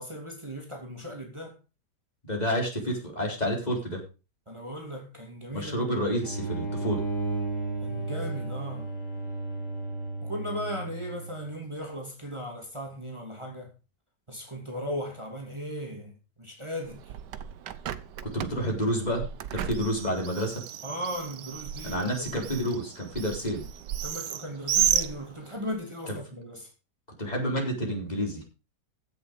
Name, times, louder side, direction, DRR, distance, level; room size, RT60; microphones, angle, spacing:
voice 1, 0.0-1.6 4.5-5.9 7.8-8.9 10.2-13.7 14.3-16.1 16.4-17.0 20.8-22.3 24.0-26.7, equal, 15° right, 2.8 m, -37 dB
voice 2, 2.3-4.0 5.5-7.0 18.3-20.6 21.8-23.6 26.1-26.2 27.2-28.4, equal, 25° left, 4.2 m, -29 dB
sound 1, 6.2-11.6, right 3 dB, 40° left, 5.0 m, -33 dB
Bird, 16.8-25.7, right 10 dB, 85° right, 1.5 m, -33 dB
15.5 x 7.0 x 5.3 m
omnidirectional pair, 1.8 m